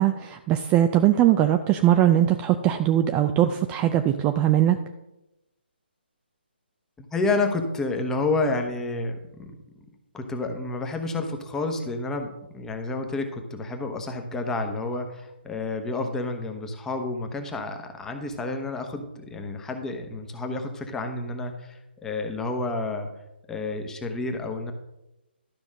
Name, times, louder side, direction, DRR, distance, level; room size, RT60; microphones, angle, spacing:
voice 1, 0.0-4.8, right 12 dB, 20° right, 7 dB, 0.4 m, -20 dB
voice 2, 7.1-9.6 10.1-23.1 23.5-24.7, left 3 dB, 10° left, 4 dB, 1.1 m, -30 dB
12.5 x 5.2 x 6.2 m, 0.94 s
figure-of-eight pair, 145°, 6 cm